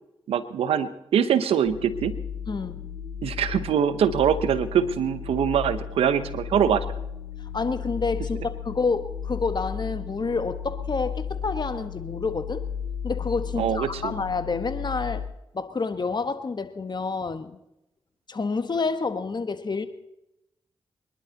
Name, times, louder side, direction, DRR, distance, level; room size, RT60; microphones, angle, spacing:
voice 1, 0.3-2.1 3.2-6.8 13.6-14.1, right 8 dB, 90° right, 13 dB, 0.9 m, -23 dB
sound 1, 1.6-15.2, left 7 dB, 85° left, 5.6 m, -34 dB
voice 2, 2.5-2.9 7.5-12.6 13.0-15.2 15.5-17.6 18.3-19.9, left 4 dB, 50° left, 10 dB, 1.5 m, -28 dB
25.0 x 11.0 x 4.1 m, 0.87 s
supercardioid pair, 45°, 10 cm